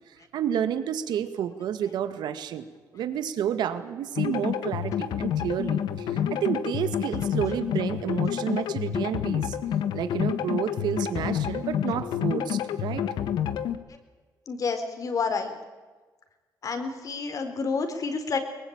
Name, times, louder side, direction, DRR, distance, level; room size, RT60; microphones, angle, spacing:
voice 1, 0.1-2.7 2.9-9.6 9.9-13.1, right 9 dB, 80° right, 11 dB, 1.8 m, -30 dB
sound 1, 4.2-13.8, left 9 dB, 80° left, 1.4 m, -28 dB
voice 2, 14.5-15.6 16.6-18.4, left 4 dB, 50° left, 7 dB, 4.0 m, -30 dB
22.5 x 20.5 x 8.8 m, 1.3 s
cardioid pair, 85°, 7 cm